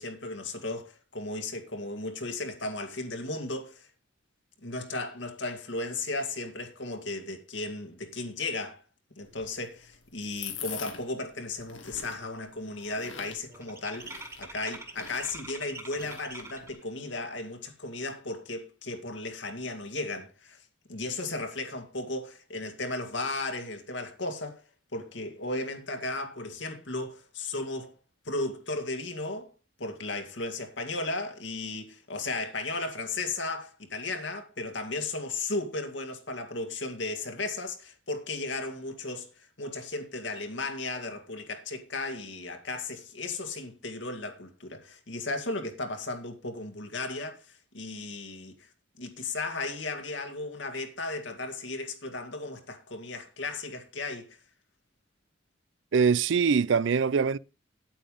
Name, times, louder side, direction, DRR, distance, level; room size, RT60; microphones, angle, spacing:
voice 1, 0.0-3.9 4.6-8.8 9.2-20.6 20.9-24.6 24.9-27.9 28.2-29.5 29.8-48.7 49.0-54.3, left 2 dB, 70° left, 2.2 m, -35 dB
sound 1, 9.2-16.7, left 7 dB, 90° left, 2.3 m, -45 dB
sound 2, 11.6-11.9 12.2-16.8, right 2 dB, 15° right, 1.8 m, -45 dB
voice 2, 55.9-57.4, right 5 dB, 75° right, 0.4 m, -23 dB
9.2 x 8.8 x 5.2 m
head